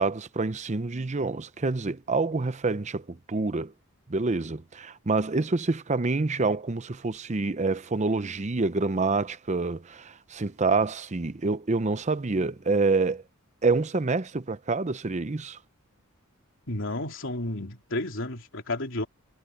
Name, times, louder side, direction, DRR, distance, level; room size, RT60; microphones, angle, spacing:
voice 1, 0.0-3.7 4.1-13.2 13.6-15.6, right 3 dB, 35° right, 0.7 m, -27 dB
voice 2, 16.7-19.1, left 2 dB, 60° left, 3.4 m, -32 dB
head